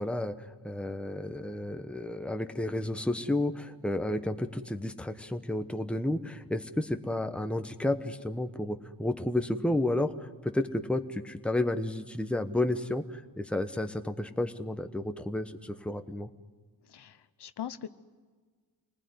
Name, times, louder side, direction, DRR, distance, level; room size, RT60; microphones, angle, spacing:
voice 1, 0.0-10.1 10.4-16.3, left 1 dB, 5° left, 7 dB, 1.0 m, -31 dB
voice 2, 16.9-17.9, left 10 dB, 65° left, 12 dB, 1.0 m, -41 dB
27.0 x 20.0 x 9.6 m, 1.5 s
wide cardioid pair, 120°, 44 cm